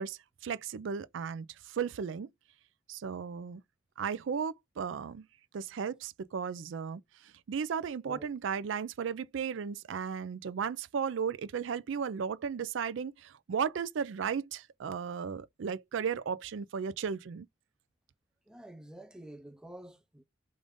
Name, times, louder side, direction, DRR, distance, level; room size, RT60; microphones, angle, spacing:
voice 1, 0.0-2.3 2.9-3.6 4.0-5.3 5.5-7.0 7.5-17.5, right 6 dB, 65° right, 0.4 m, -35 dB
voice 2, 18.5-20.2, right 1 dB, 5° right, 0.5 m, -49 dB
4.8 x 2.6 x 3.5 m
head